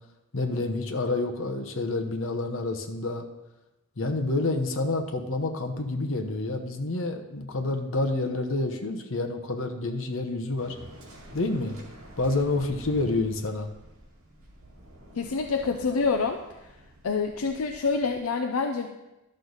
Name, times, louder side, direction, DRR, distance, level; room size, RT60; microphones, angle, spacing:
voice 1, 0.3-3.2 4.0-10.7 11.3-11.8 12.2-13.7, left 2 dB, 60° left, 5 dB, 0.9 m, -28 dB
Waves surf, 10.6-18.2, right 1 dB, 80° right, 2.3 m, -48 dB
voice 2, 15.2-16.4 17.0-18.9, left 4 dB, 75° left, 4 dB, 0.5 m, -26 dB
11.5 x 6.5 x 4.0 m, 0.98 s
head